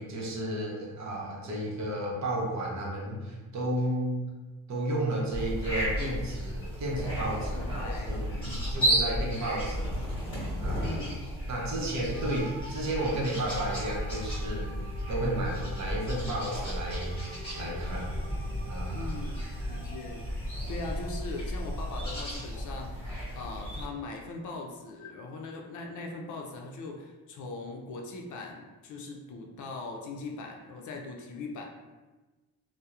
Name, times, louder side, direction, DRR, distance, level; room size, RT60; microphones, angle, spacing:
voice 1, 0.0-4.3 4.7-10.0 10.6-10.9 11.5-14.8 15.1-18.1 18.7-19.3 19.6-19.8, right 1 dB, 50° right, -3 dB, 0.8 m, -33 dB
sound 1, 5.3-23.9, equal, 15° left, 1.2 m, -33 dB
voice 2, 7.5-8.8 10.7-11.3 11.8-12.1 18.9-20.3 20.7-23.1 23.3-31.7, left 3 dB, 55° left, 1 dB, 0.5 m, -40 dB
sound 2, 12.1-20.7, right 2 dB, 85° right, 0.8 m, -48 dB
sound 3, 17.9-22.9, equal, 5° right, 0.5 m, -48 dB
2.7 x 2.0 x 2.3 m, 1.2 s
cardioid pair, 80°, 37 cm